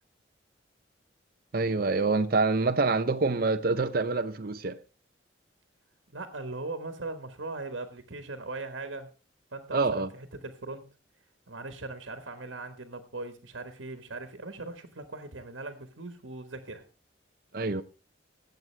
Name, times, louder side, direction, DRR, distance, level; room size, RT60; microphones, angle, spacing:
voice 1, 1.5-4.8 9.7-10.1 17.5-17.8, right 3 dB, 50° right, 0.6 m, -26 dB
voice 2, 6.1-9.1 9.5-10.8 11.5-16.8, right 3 dB, 75° right, 1.4 m, -39 dB
20.0 x 7.8 x 3.3 m
head